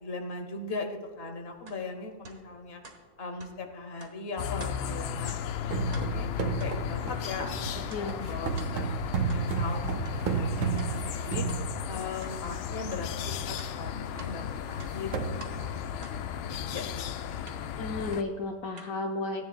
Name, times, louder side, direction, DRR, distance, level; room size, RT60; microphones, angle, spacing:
voice 1, 0.0-2.8 3.2-5.4 5.6-7.5 8.0-8.9 9.3-11.5 11.9-17.4, left 3 dB, 40° left, 5 dB, 0.9 m, -39 dB
sound 1, 1.7-1.8 2.2-2.4 2.8-3.0 3.4-3.5 4.0-4.1 4.6-4.8 5.3-5.4 5.8-6.1 6.6-6.7 7.2-7.4 7.9-8.0 8.6-8.7 9.3-9.4 10.0-10.2 10.8-10.9 11.5-11.6 12.2-12.3 12.9-13.0 13.6-14.3 14.7-15.5 16.0-16.2 16.8-16.9 17.5-17.6 18.1-18.2 18.8-18.9, right 3 dB, 45° right, 1.8 m, -47 dB
sound 2, 4.4-18.2, left 9 dB, 85° left, 1.4 m, -35 dB
sound 3, 5.7-12.2 12.9-13.0 13.3-13.5 13.9-14.0 14.6-14.7 14.9-15.3, right 5 dB, 70° right, 1.7 m, -32 dB
voice 2, 7.9-8.2 17.8-19.5, left 3 dB, 70° left, 2 dB, 0.8 m, -33 dB
16.0 x 10.5 x 2.3 m, 1.5 s
omnidirectional pair, 2.2 m